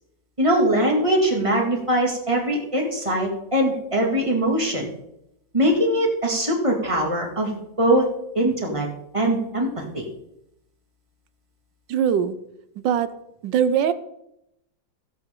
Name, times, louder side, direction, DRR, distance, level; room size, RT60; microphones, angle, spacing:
voice 1, 0.4-4.9 5.5-7.5 7.8-8.0 8.3-8.9 9.1-10.1, right 1 dB, 15° right, 0 dB, 2.1 m, -21 dB
voice 2, 11.9-12.4 12.8-13.1 13.4-13.9, right 8 dB, 75° right, 14 dB, 1.3 m, -21 dB
16.0 x 8.0 x 3.7 m, 0.81 s
omnidirectional pair, 2.1 m